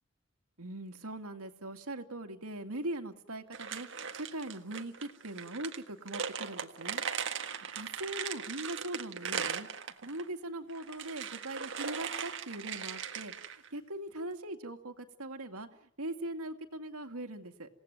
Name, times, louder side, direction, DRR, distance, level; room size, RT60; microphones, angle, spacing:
voice 1, 0.6-3.9 4.1-7.0 7.7-9.7 10.0-17.7, right 1 dB, 80° right, 6 dB, 2.3 m, -41 dB
sound 1, 3.5-10.2 10.7-13.7, right 7 dB, 55° right, 1.7 m, -39 dB
28.0 x 18.0 x 9.3 m, 0.70 s
head